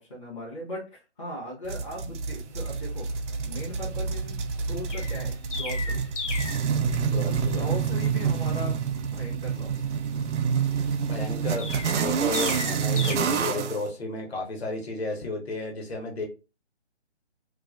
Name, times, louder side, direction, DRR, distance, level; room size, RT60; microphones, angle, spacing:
voice 1, 0.0-3.1 3.5-6.0 7.1-8.8 9.1-9.9, left 1 dB, 25° left, -6 dB, 0.5 m, -38 dB
sound 1, 1.7-13.8, right 6 dB, 80° right, 0.5 m, -28 dB
Chirp tweet, 4.9-6.7 11.6-13.2, left 4 dB, 90° left, 0.7 m, -35 dB
voice 2, 7.1-7.8 10.7-16.2, left 2 dB, 60° left, 1 dB, 1.0 m, -33 dB
2.4 x 2.3 x 2.4 m, 0.32 s
figure-of-eight pair, 160°, 35 cm